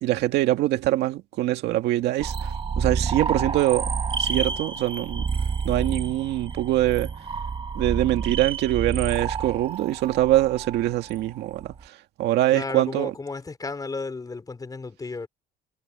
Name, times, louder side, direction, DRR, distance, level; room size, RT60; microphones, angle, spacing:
voice 1, 0.0-2.5 2.8-3.9 4.2-5.2 5.6-7.1 7.7-13.1, right 15 dB, 80° right, 2.1 m, -24 dB
sound 1, 2.2-11.8, right 5 dB, 30° right, 1.7 m, -29 dB
voice 2, 12.5-15.3, left 3 dB, 20° left, 4.1 m, -33 dB
cardioid pair, 110°, 17 cm